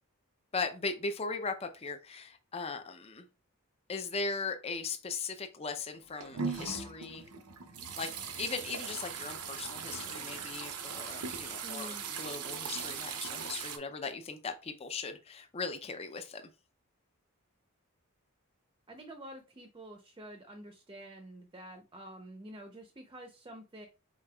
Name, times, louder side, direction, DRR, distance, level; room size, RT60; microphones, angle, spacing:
voice 1, 0.5-3.3 3.9-7.2 8.0-8.1 8.4-16.5, left 4 dB, 25° left, 7 dB, 0.4 m, -38 dB
sound 1, 5.9-13.8, right 6 dB, 90° right, 0.7 m, -39 dB
voice 2, 11.6-12.1 18.9-23.9, right 1 dB, 20° right, 5 dB, 0.6 m, -48 dB
5.1 x 4.0 x 2.3 m, 0.31 s
head